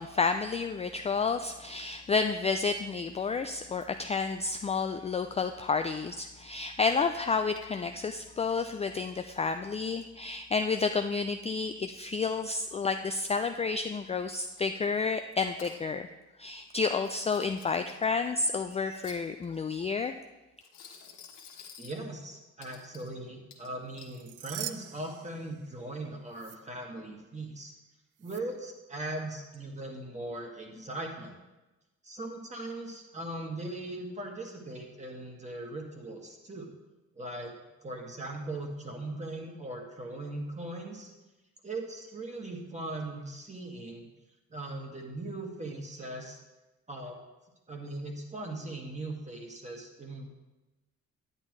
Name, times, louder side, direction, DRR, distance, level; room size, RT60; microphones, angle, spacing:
voice 1, 0.0-16.1 16.4-20.1, left 4 dB, 20° left, 7 dB, 0.3 m, -30 dB
Coin (dropping), 14.3-14.8 15.3-15.8 16.9-18.1 18.7-19.6 20.6-22.0 22.6-23.1 23.5-24.2, left 6 dB, 75° left, 1.4 m, -51 dB
voice 2, 21.8-27.7 28.2-31.3 32.0-36.7 37.1-37.5 37.8-41.1 41.6-44.1 44.5-46.4 46.9-47.2 47.7-50.3, right 2 dB, 25° right, 1 dB, 1.9 m, -39 dB
sound 1, 24.0-26.0 26.3-26.6 28.2-28.4, right 13 dB, 85° right, 0.5 m, -43 dB
9.8 x 8.9 x 3.2 m, 1.1 s
cardioid pair, 90°, 30 cm